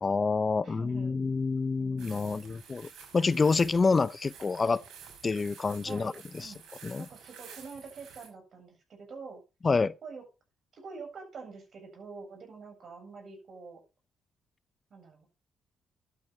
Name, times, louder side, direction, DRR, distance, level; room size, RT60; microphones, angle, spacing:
voice 1, 0.0-4.8 5.2-6.5 6.8-7.1 9.6-9.9, left 4 dB, 30° left, 0.5 m, -28 dB
voice 2, 0.6-1.2 1.8-2.6 5.8-6.6 7.0-9.4 10.0-10.2 10.7-13.8 14.9-15.4, right 4 dB, 55° right, 7.6 m, -46 dB
sound 1, 2.0-8.3, right 6 dB, 85° right, 5.8 m, -50 dB
11.5 x 9.5 x 4.6 m
cardioid pair, 90°, 0 cm